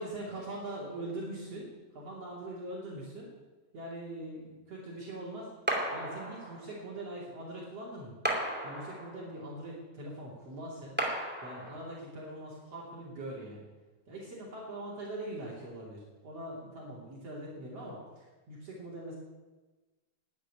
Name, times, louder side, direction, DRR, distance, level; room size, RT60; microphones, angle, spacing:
voice 1, 0.0-3.3 3.7-5.5 5.9-8.1 8.6-10.9 11.4-13.7 14.1-19.2, right 1 dB, 50° right, -4 dB, 3.8 m, -42 dB
sound 1, 5.7-6.8 8.2-9.4 11.0-12.0, right 1 dB, 5° right, 1.8 m, -34 dB
11.5 x 9.9 x 9.7 m, 1.2 s
omnidirectional pair, 3.7 m